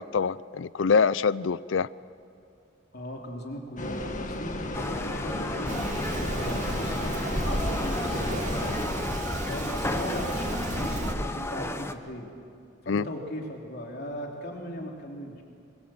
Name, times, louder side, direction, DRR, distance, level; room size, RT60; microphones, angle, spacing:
voice 1, 0.0-1.9 12.9-13.0, left 5 dB, 75° left, 19 dB, 0.5 m, -25 dB
voice 2, 2.9-9.0 9.5-12.3 12.8-15.4, equal, 55° left, 1 dB, 3.1 m, -38 dB
sound 1, 3.8-8.9, left 1 dB, 40° left, 1.6 m, -34 dB
sound 2, 4.7-11.9, left 2 dB, 15° left, 0.9 m, -34 dB
Rain, 5.7-11.1, right 1 dB, 40° right, 2.3 m, -32 dB
25.0 x 23.0 x 7.7 m, 2.4 s
head